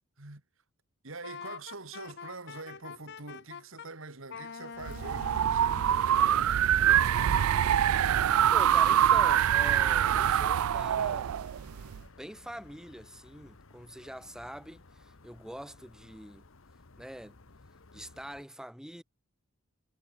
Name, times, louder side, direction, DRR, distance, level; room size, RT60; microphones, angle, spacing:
voice 1, 1.0-7.1, right 3 dB, 65° right, 2.5 m, -45 dB
Wind instrument woodwind instrument, 1.2-3.9 4.3-6.7, left 6 dB, 55° left, 0.7 m, -45 dB
sound 1, 4.8-12.0, right 10 dB, 85° right, 0.4 m, -25 dB
sound 2, 5.1-18.4, left 3 dB, 70° left, 1.2 m, -54 dB
voice 2, 8.5-11.4 11.9-16.4 17.0-17.4 17.9-19.0, equal, 5° right, 1.3 m, -44 dB
head